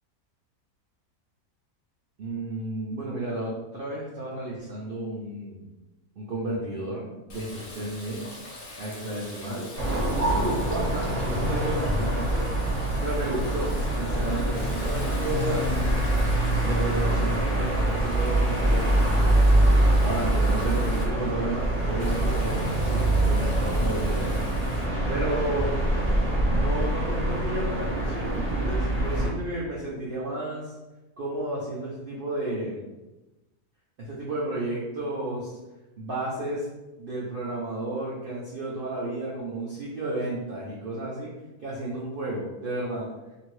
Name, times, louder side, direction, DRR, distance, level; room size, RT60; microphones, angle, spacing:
voice 1, 2.2-5.6 6.2-8.4 8.8-9.7 10.1-12.4 13.0-15.8 16.6-19.5 20.0-24.4 25.1-25.7 26.5-30.8 31.2-32.9 34.0-35.5 36.0-36.7 37.0-41.3 41.6-43.1, right 1 dB, 90° right, -5 dB, 0.4 m, -32 dB
Water tap faucet, 7.3-21.0 22.0-24.9, left 1 dB, 65° left, 1.1 m, -42 dB
sound 1, 9.8-29.3, right 1 dB, 10° right, 1.4 m, -24 dB
2.8 x 2.6 x 3.0 m, 1.1 s
omnidirectional pair, 1.6 m